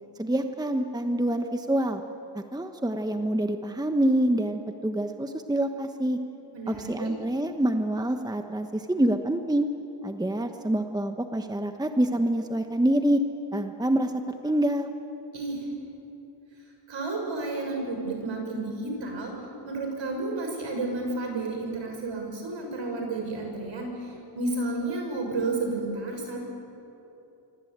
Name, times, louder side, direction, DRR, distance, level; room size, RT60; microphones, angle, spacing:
voice 1, 0.2-2.0 2.5-6.2 6.7-9.7 10.0-13.2 13.5-14.9, right 1 dB, 10° right, 6 dB, 1.2 m, -26 dB
voice 2, 6.5-7.1 15.3-15.7 16.9-19.3 19.6-26.4, right 2 dB, 60° right, 2 dB, 7.1 m, -31 dB
26.5 x 25.0 x 8.9 m, 2.9 s
cardioid pair, 105°, 49 cm